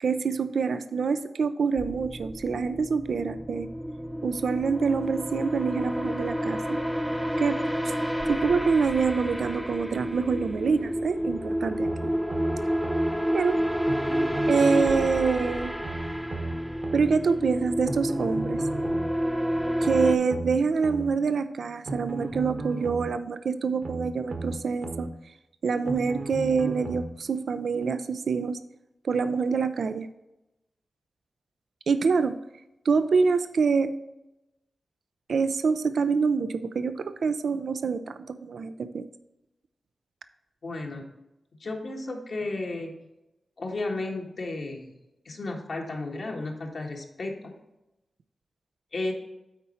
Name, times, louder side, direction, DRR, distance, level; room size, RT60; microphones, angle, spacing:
voice 1, 0.0-3.7 4.2-6.8 7.4-7.9 8.3-12.1 13.3-13.6 14.5-15.7 16.9-18.6 19.8-25.1 25.6-28.6 29.0-30.1 31.9-32.4 32.8-34.0 35.3-39.1, right 5 dB, 75° right, 11 dB, 0.4 m, -26 dB
sound 1, 1.8-20.2, equal, 5° right, 0.7 m, -29 dB
sound 2, 11.8-13.1 13.9-15.1 15.8-17.1 17.9-19.1 19.8-21.1 21.9-23.1 23.8-25.1 25.9-27.1 27.8-27.9, right 2 dB, 60° right, 1.2 m, -35 dB
voice 2, 40.6-41.1 41.6-43.0 43.6-44.9 45.2-47.6 48.9-49.1, left 2 dB, 65° left, 0 dB, 1.5 m, -33 dB
9.3 x 4.3 x 4.2 m, 0.94 s
cardioid pair, 50°, 0 cm